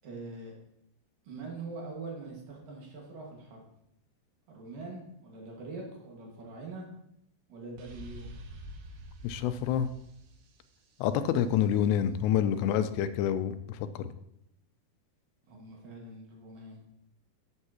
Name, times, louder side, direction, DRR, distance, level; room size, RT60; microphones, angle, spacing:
voice 1, 0.0-0.6 1.2-3.6 4.5-6.9 7.5-8.3 15.5-16.8, right 3 dB, 60° right, -1 dB, 3.1 m, -43 dB
sound 1, 7.8-11.5, equal, 80° right, 3.1 m, -47 dB
voice 2, 9.2-9.9 11.0-14.1, left 9 dB, 90° left, 11 dB, 2.7 m, -28 dB
12.5 x 7.4 x 2.9 m, 0.77 s
omnidirectional pair, 4.9 m